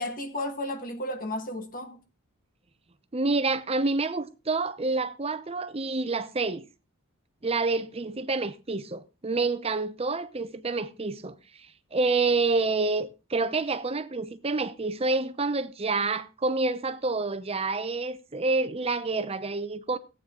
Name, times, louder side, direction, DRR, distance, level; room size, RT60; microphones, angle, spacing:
voice 1, 0.0-2.0, left 1 dB, 40° left, 1.6 m, -33 dB
voice 2, 3.1-6.6 7.4-11.3 11.9-20.0, right 3 dB, 25° right, 0.8 m, -28 dB
14.5 x 9.0 x 3.8 m
head